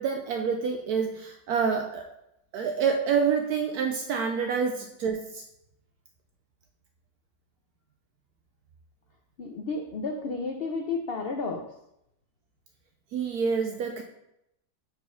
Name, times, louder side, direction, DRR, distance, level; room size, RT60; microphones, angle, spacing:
voice 1, 0.0-2.1 2.5-5.4 13.1-14.0, right 6 dB, 75° right, 3 dB, 1.0 m, -27 dB
voice 2, 9.4-11.6, left 3 dB, 85° left, 3 dB, 0.5 m, -32 dB
4.8 x 4.0 x 5.6 m, 0.81 s
omnidirectional pair, 1.8 m